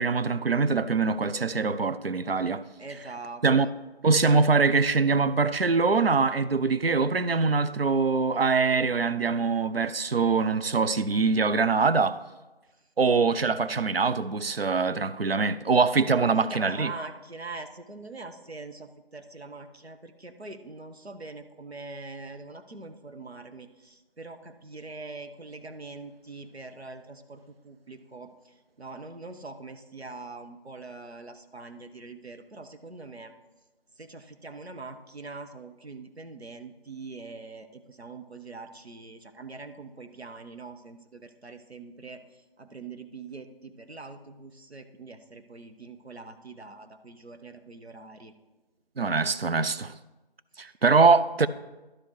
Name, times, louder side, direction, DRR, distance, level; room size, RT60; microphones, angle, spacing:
voice 1, 0.0-2.6 3.4-3.7 4.0-12.2 13.0-16.9 49.0-49.9 50.6-51.5, right 4 dB, 70° right, 0.5 m, -23 dB
voice 2, 2.8-3.7 16.3-33.3 34.0-48.3 50.6-50.8, right 3 dB, 85° right, 1.0 m, -43 dB
11.5 x 4.9 x 4.7 m
figure-of-eight pair, 180°, 31 cm